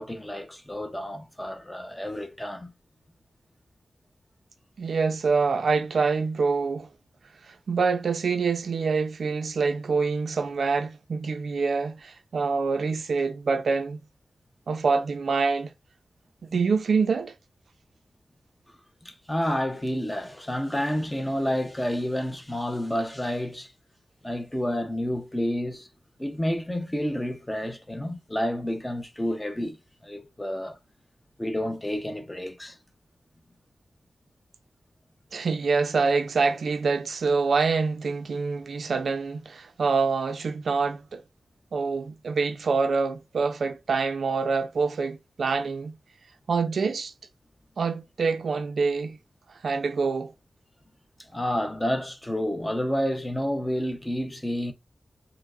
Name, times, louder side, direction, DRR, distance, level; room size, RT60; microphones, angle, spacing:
voice 1, 0.0-2.7 19.0-23.7 24.2-25.9 26.2-29.8 30.0-30.8 31.4-32.8 51.3-54.7, equal, 10° left, 0.5 m, -29 dB
voice 2, 4.8-6.9 7.5-14.0 14.7-15.7 16.5-17.3 35.3-41.2 41.7-45.9 46.5-47.1 47.8-49.2 49.6-50.3, right 4 dB, 75° right, 0.4 m, -26 dB
4.5 x 2.0 x 2.4 m
wide cardioid pair, 150°, 0 cm